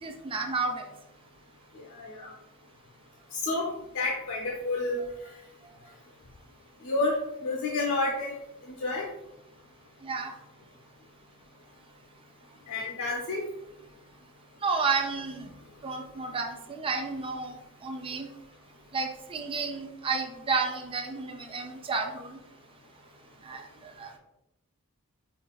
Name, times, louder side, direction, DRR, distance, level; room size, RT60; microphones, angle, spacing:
voice 1, 0.0-0.9 10.0-10.3 14.6-15.5 15.8-17.5 17.8-18.3 18.9-22.3 23.4-23.6 24.0-24.1, right 4 dB, 25° right, 3 dB, 0.4 m, -31 dB
voice 2, 1.9-2.3 3.4-3.7 3.9-5.0 6.8-8.3 8.8-9.1 12.7-13.5, left 2 dB, 65° left, -2 dB, 0.5 m, -29 dB
5.3 x 2.4 x 2.3 m, 0.88 s
head